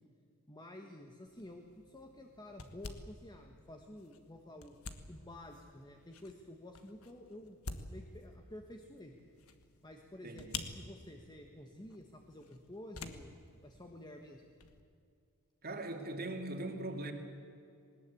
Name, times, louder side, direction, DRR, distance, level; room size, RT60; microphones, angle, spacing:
voice 1, 0.5-4.8 5.1-7.6 7.9-9.1 9.8-10.5 10.7-13.3 13.6-14.4, left 1 dB, 20° left, 3 dB, 1.3 m, -51 dB
sound 1, 1.3-14.8, left 4 dB, 70° left, 1.6 m, -50 dB
voice 2, 10.2-10.6 15.6-17.1, right 2 dB, 45° right, 4 dB, 2.5 m, -40 dB
20.5 x 19.5 x 8.4 m, 2.5 s
head